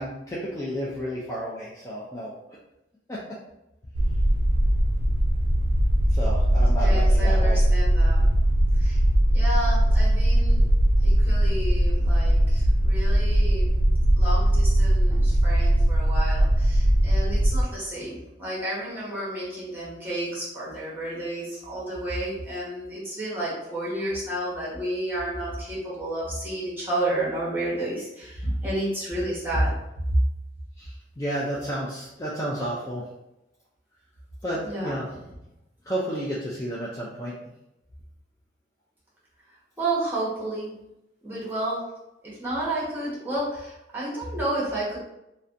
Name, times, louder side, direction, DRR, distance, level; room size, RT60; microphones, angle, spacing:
voice 1, 0.0-2.3 3.1-3.2 6.1-7.6 15.1-15.2 30.8-33.0 34.4-35.0 35.9-37.3, equal, 20° left, -6 dB, 0.3 m, -31 dB
sound 1, 3.9-17.6, right 1 dB, 70° right, 0.4 m, -20 dB
voice 2, 6.5-8.3 8.7-9.0 9.3-10.7 11.0-13.8 14.2-29.7 30.1-30.2 34.6-35.2 39.8-40.7 41.2-41.9 42.2-45.0, right 1 dB, 10° right, -7 dB, 0.9 m, -31 dB
2.5 x 2.1 x 2.5 m, 0.90 s
head